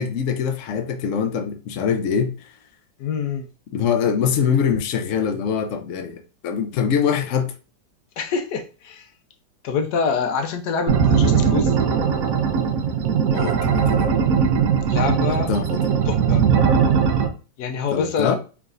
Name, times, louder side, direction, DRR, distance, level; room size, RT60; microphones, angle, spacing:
voice 1, 0.0-2.3 3.7-7.5 13.3-14.1 15.3-15.8 17.9-18.4, left 7 dB, 85° left, 0.6 m, -23 dB
voice 2, 3.0-3.5 8.2-9.1 9.6-11.7 14.9-15.5 16.1-16.5 17.6-18.4, left 5 dB, 65° left, 1.1 m, -25 dB
sound 1, 10.9-17.3, right 7 dB, 65° right, 0.8 m, -19 dB
4.8 x 3.1 x 2.4 m
omnidirectional pair, 2.1 m